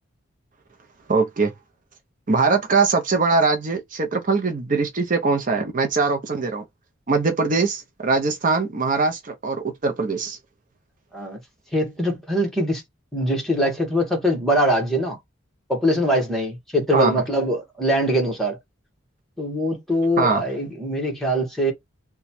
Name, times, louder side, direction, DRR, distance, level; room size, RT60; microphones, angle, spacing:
voice 1, 1.1-1.5 2.3-6.6 7.1-10.4 16.9-17.2 20.2-20.4, right 4 dB, 40° right, 0.6 m, -22 dB
voice 2, 11.7-12.8 13.1-15.2 15.7-18.6 19.4-21.7, equal, ahead, 1.1 m, -22 dB
3.0 x 2.2 x 4.1 m
head